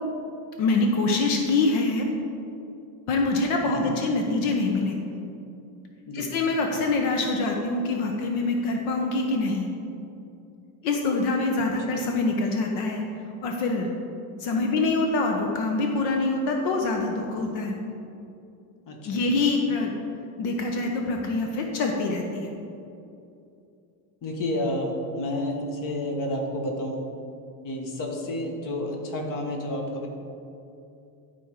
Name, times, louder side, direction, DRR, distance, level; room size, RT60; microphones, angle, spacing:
voice 1, 0.6-2.0 3.1-5.0 6.1-9.7 10.8-13.0 13.4-13.9 14.4-17.8 19.0-19.9 20.4-22.5, left 3 dB, 70° left, 2 dB, 1.0 m, -25 dB
voice 2, 18.9-19.2 24.2-27.0 27.6-30.1, left 1 dB, 45° left, 2 dB, 1.3 m, -30 dB
11.0 x 4.4 x 4.7 m, 2.7 s
cardioid pair, 130°, 47 cm